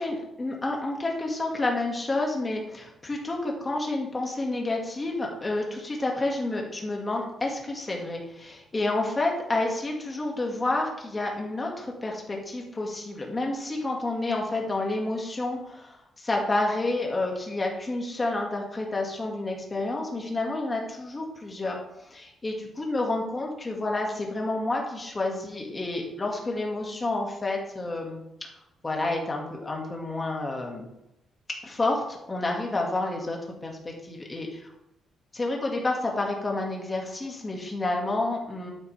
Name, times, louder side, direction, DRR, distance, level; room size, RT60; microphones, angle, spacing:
voice 1, 0.0-15.8 16.2-21.8 22.1-28.2 28.8-30.9 31.6-34.5 35.3-38.7, left 2 dB, 20° left, 0 dB, 2.1 m, -29 dB
11.0 x 9.7 x 3.5 m, 0.86 s
cardioid pair, 160°, 0 cm